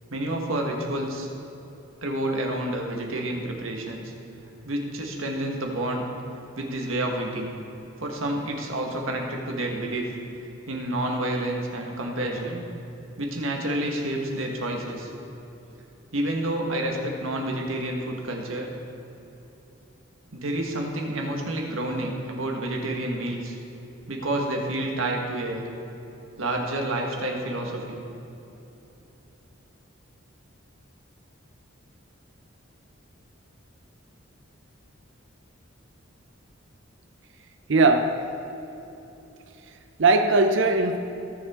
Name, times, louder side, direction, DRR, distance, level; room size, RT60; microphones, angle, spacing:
voice 1, 0.1-1.3 2.0-4.1 4.6-6.0 6.5-7.6 8.0-10.1 10.7-12.6 13.2-15.1 16.1-18.7 20.3-23.6 24.1-25.7 26.4-28.0, right 1 dB, 80° right, 1 dB, 1.5 m, -29 dB
voice 2, 37.7-38.2 40.0-41.0, right 3 dB, 60° right, 6 dB, 0.6 m, -19 dB
16.5 x 7.0 x 3.7 m, 3.0 s
head